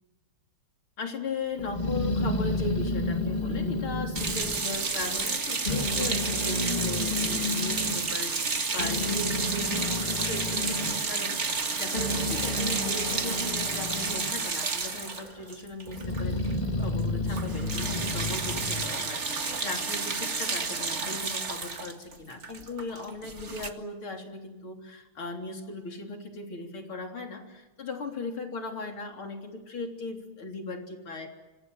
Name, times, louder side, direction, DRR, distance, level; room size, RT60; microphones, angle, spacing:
voice 1, 1.0-16.4 16.8-31.3, left 3 dB, 70° left, 3 dB, 4.3 m, -38 dB
Growling, 1.6-5.3 5.6-8.0 8.5-14.4 14.7-15.4 15.9-19.6, left 2 dB, 20° left, 3.4 m, -31 dB
sound 1, 4.1-16.5 16.8-17.0 17.3-23.7, right 4 dB, 35° right, 2.0 m, -31 dB
26.5 x 25.0 x 7.8 m, 1.1 s
omnidirectional pair, 2.4 m